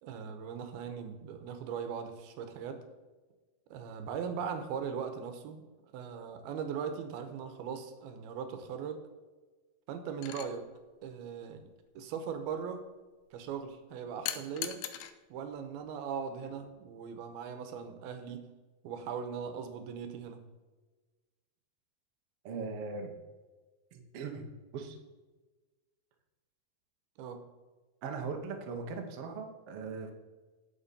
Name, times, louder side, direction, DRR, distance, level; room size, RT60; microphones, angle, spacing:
voice 1, 0.0-2.8 3.7-5.6 5.9-9.0 9.9-10.7 11.0-11.7 12.0-12.8 13.3-14.8 15.3-18.5 18.8-20.4 27.2-27.4, right 7 dB, 85° right, 8 dB, 2.8 m, -39 dB
sound 1, 10.2-10.5 14.3-15.1 16.5-16.7, left 12 dB, 85° left, 2.5 m, -38 dB
voice 2, 22.4-23.1 23.9-24.5 24.7-25.0 28.0-30.1, right 4 dB, 60° right, 3 dB, 1.5 m, -39 dB
10.5 x 8.0 x 4.2 m, 1.3 s
omnidirectional pair, 4.4 m